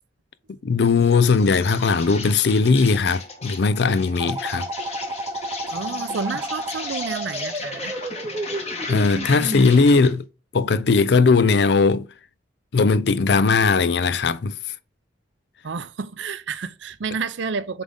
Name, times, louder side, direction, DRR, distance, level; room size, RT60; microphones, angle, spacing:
voice 1, 0.6-4.7 8.9-10.2 10.5-12.1 12.7-14.6, left 4 dB, 65° left, 0.5 m, -18 dB
Insect, 0.8-10.2, left 4 dB, 35° left, 1.6 m, -36 dB
sound 1, 4.2-9.7, right 1 dB, 20° right, 0.6 m, -31 dB
voice 2, 5.7-7.9 15.6-17.8, right 5 dB, 80° right, 0.6 m, -30 dB
7.2 x 3.8 x 3.6 m
head